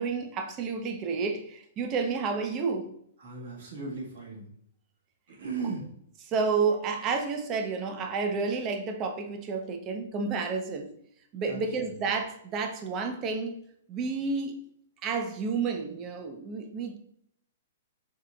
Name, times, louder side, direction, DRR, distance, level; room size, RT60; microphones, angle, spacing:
voice 1, 0.0-2.9 6.3-10.9 11.3-13.6 13.9-14.5 15.0-17.0, right 4 dB, 30° right, 0.6 m, -30 dB
voice 2, 3.2-4.5 5.3-5.8 11.5-11.9, right 4 dB, 70° right, 1.6 m, -37 dB
4.5 x 3.3 x 2.4 m
hypercardioid pair, 130°, 0 cm